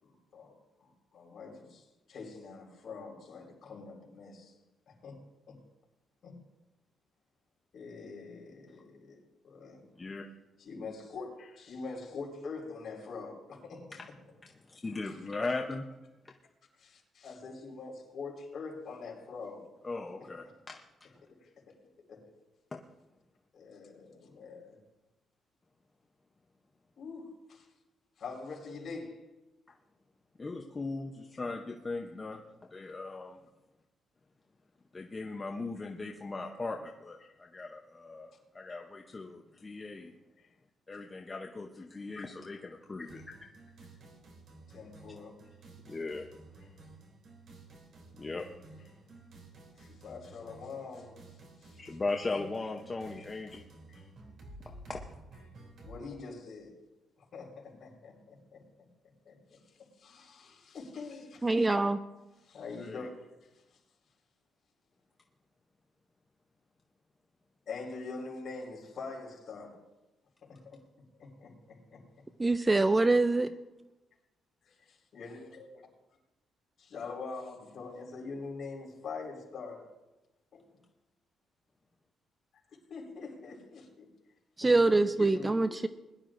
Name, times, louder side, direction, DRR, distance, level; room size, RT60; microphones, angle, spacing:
voice 1, 0.0-4.5 4.9-5.6 6.2-6.4 7.7-9.8 10.6-14.0 15.0-15.1 16.7-19.7 20.2-20.3 21.4-21.7 22.1-22.3 23.5-24.8 27.0-27.7 28.2-29.2 37.2-37.3 40.4-40.5 44.7-45.4 49.8-51.2 51.6-51.8 53.9-54.1 55.8-56.8 57.2-58.9 59.2-61.8 62.2-63.1 63.4-63.5 67.7-69.8 70.4-70.6 71.2-72.2 75.1-75.7 76.8-79.9 80.5-80.6 82.9-84.1 84.6-85.7, left 4 dB, 45° left, -1 dB, 4.4 m, -44 dB
voice 2, 14.7-15.9 19.8-20.8 22.7-22.8 30.4-33.4 34.9-40.1 40.9-43.2 45.8-46.3 48.2-48.5 51.8-53.6 54.9-55.0 62.8-63.1, left 3 dB, 20° left, 2 dB, 0.7 m, -38 dB
sound 1, 43.1-56.0, right 2 dB, 55° right, 2.9 m, -53 dB
voice 3, 61.4-62.0 72.4-73.5 84.6-85.9, right 2 dB, 15° right, 11 dB, 0.4 m, -25 dB
21.0 x 11.5 x 2.5 m, 1.0 s
cardioid pair, 155°, 0 cm